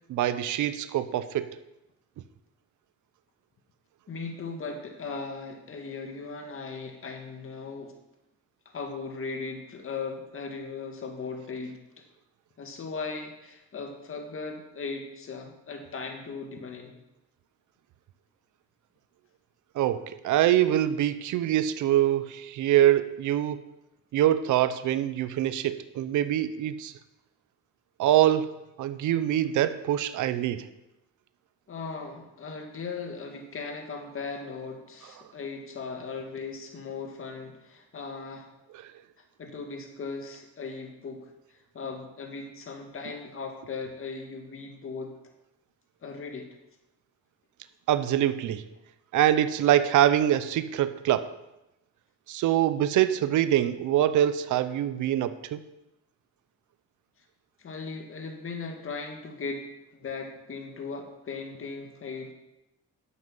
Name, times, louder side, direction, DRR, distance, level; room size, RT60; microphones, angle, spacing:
voice 1, 0.1-1.5 19.8-23.6 24.1-26.9 28.0-30.7 47.9-48.6 49.1-51.3 52.3-55.6, right 12 dB, 80° right, 12 dB, 0.7 m, -24 dB
voice 2, 4.1-7.9 8.7-12.0 12.6-17.0 31.7-38.5 39.4-45.1 46.0-46.5 57.6-62.3, left 4 dB, 45° left, 3 dB, 1.9 m, -38 dB
11.0 x 7.9 x 5.5 m, 0.92 s
cardioid pair, 90°, 30 cm